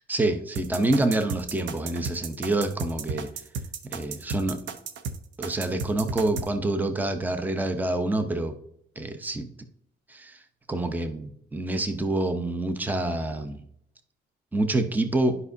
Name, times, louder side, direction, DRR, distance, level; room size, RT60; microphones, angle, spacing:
voice 1, 0.1-3.3 3.9-4.6 5.4-8.6 9.0-9.5 10.1-10.4 10.7-13.6 14.5-15.4, right 2 dB, 10° right, 7 dB, 0.7 m, -27 dB
sound 1, 0.6-6.5, right 5 dB, 75° right, 0.8 m, -34 dB
10.5 x 5.5 x 2.7 m, 0.71 s
cardioid pair, 90°, 20 cm